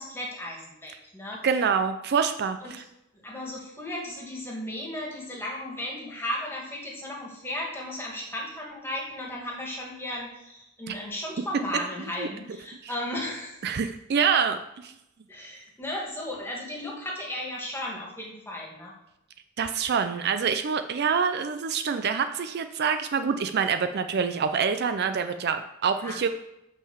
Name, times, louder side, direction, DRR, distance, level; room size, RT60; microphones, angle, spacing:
voice 1, 0.0-1.5 2.6-2.7 3.2-13.6 15.3-18.9 26.0-26.2, left 1 dB, 10° left, -3 dB, 2.0 m, -35 dB
voice 2, 1.4-2.8 10.9-11.0 12.2-12.3 13.6-14.9 19.6-26.3, right 6 dB, 50° right, 9 dB, 0.4 m, -26 dB
6.1 x 5.7 x 7.0 m, 0.86 s
head